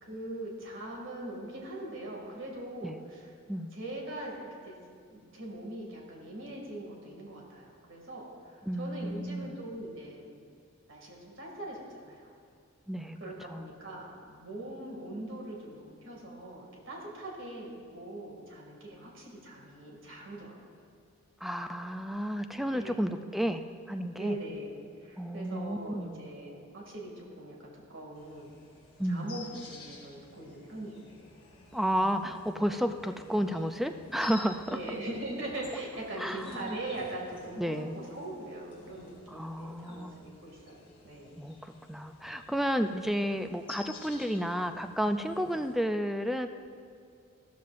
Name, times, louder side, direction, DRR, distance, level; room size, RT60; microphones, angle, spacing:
voice 1, 0.0-3.3 3.7-4.8 5.1-10.4 10.9-12.3 13.2-20.6 22.7-23.2 24.1-28.5 29.1-31.0 34.7-41.5 42.8-42.9 45.3-45.5, right 1 dB, 60° right, -1 dB, 2.3 m, -41 dB
voice 2, 8.7-9.6 12.9-13.7 21.4-24.4 25.2-26.2 29.0-29.3 31.7-34.8 36.2-36.8 37.6-38.0 39.3-40.2 41.4-46.5, equal, ahead, 7 dB, 0.4 m, -32 dB
sound 1, 28.1-45.7, left 3 dB, 25° left, 2.7 m, -52 dB
14.0 x 13.0 x 2.6 m, 2.3 s
head